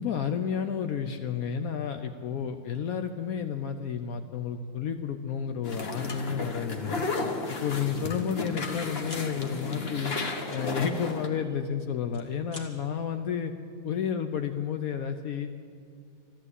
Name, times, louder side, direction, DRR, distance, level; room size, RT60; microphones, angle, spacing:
voice 1, 0.0-7.1 7.6-10.2 10.5-13.5 13.8-15.5, left 7 dB, 90° left, 7 dB, 0.7 m, -31 dB
sound 1, 5.6-11.3, left 3 dB, 35° left, 1.0 m, -33 dB
sound 2, 6.7-7.0 7.4-7.6 7.8-8.8 9.0-9.3 10.9-11.7 12.0-12.7, left 1 dB, 20° left, 1.5 m, -47 dB
13.5 x 12.5 x 8.2 m, 2.3 s
omnidirectional pair, 2.3 m